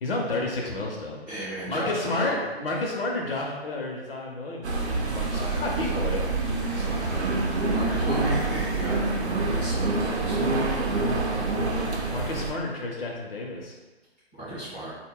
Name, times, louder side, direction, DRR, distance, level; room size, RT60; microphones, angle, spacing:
voice 1, 0.0-1.2 1.7-6.2 12.1-13.7, left 2 dB, 60° left, -1 dB, 0.6 m, -31 dB
voice 2, 1.3-2.4 5.0-6.3 6.7-7.3 7.7-11.0 14.3-14.9, right 1 dB, 10° left, -15 dB, 0.4 m, -37 dB
sound 1, 4.6-12.5, right 3 dB, 85° right, 0.6 m, -26 dB
2.2 x 2.0 x 3.5 m, 1.2 s
figure-of-eight pair, 145°, 33 cm